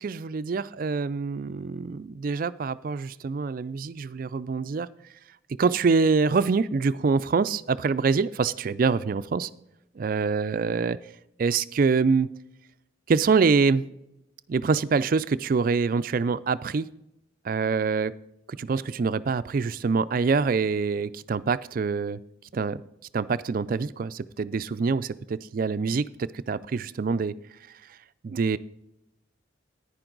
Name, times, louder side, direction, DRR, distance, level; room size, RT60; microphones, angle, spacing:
voice 1, 0.0-4.9 5.6-9.5 10.0-11.0 11.4-12.3 13.1-13.8 14.5-16.9 17.4-18.1 18.6-22.2 22.5-22.8 23.1-27.3 28.2-28.6, right 4 dB, 45° right, 16 dB, 0.3 m, -25 dB
10.5 x 9.9 x 3.9 m, 0.85 s
head